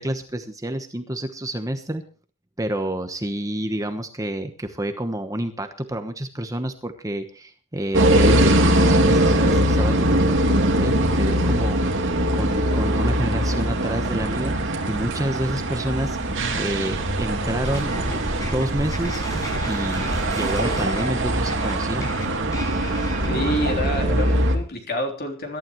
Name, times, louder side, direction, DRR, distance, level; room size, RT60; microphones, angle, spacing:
voice 1, 0.0-2.0 2.6-11.8 12.3-16.2 16.6-18.0 18.4-19.3 19.7-22.1, right 1 dB, 15° right, 7 dB, 1.1 m, -29 dB
sound 1, 7.9-24.6, right 1 dB, 60° right, 2.7 m, -21 dB
sound 2, 17.6-23.9, equal, 15° left, 6.3 m, -34 dB
voice 2, 23.3-25.6, left 1 dB, 45° left, 3 dB, 3.5 m, -28 dB
22.0 x 12.0 x 3.2 m, 0.39 s
head